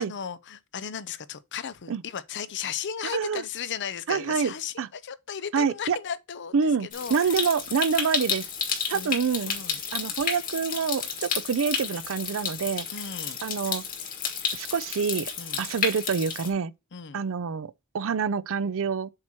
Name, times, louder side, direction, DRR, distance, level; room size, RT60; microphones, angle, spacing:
voice 1, 0.0-6.6 6.8-7.4 8.9-9.2 9.4-9.8 12.9-13.4 15.4-15.6 16.9-17.2, left 7 dB, 55° left, 0.6 m, -35 dB
voice 2, 3.1-3.4 4.1-4.9 5.5-6.0 6.5-8.5 8.9-9.5 9.9-12.9 13.4-13.8 14.5-15.3 15.6-16.7 17.1-19.1, right 6 dB, 65° right, 0.5 m, -27 dB
Stream, 6.9-16.5, left 6 dB, 40° left, 1.7 m, -31 dB
7.5 x 2.9 x 6.1 m
head